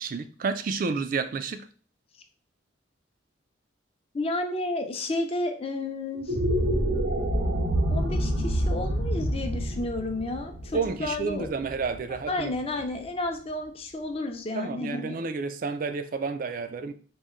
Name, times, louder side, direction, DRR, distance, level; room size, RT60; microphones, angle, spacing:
voice 1, 0.0-1.7 10.7-12.5 14.5-16.9, right 4 dB, 45° right, 10 dB, 0.3 m, -30 dB
voice 2, 4.1-6.4 7.9-11.5 12.3-15.2, left 2 dB, 30° left, 5 dB, 0.5 m, -31 dB
sound 1, 6.1-12.5, right 1 dB, 90° right, 0.9 m, -27 dB
4.1 x 2.1 x 3.6 m, 0.41 s
head